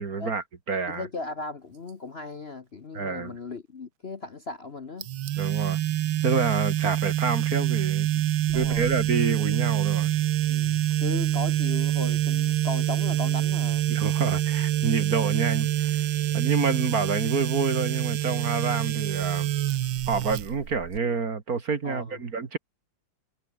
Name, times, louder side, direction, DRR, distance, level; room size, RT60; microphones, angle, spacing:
voice 1, 0.0-1.1 2.9-3.3 5.4-5.8 6.2-8.1 8.5-10.1 13.9-16.1 16.3-19.5 20.1-22.6, right 5 dB, 50° right, 2.4 m, -28 dB
voice 2, 0.9-5.1 8.5-8.9 10.5-13.9 21.8-22.2, left 3 dB, 35° left, 1.2 m, -37 dB
sound 1, 5.0-21.0, right 12 dB, 75° right, 1.7 m, -26 dB
omnidirectional pair, 2.2 m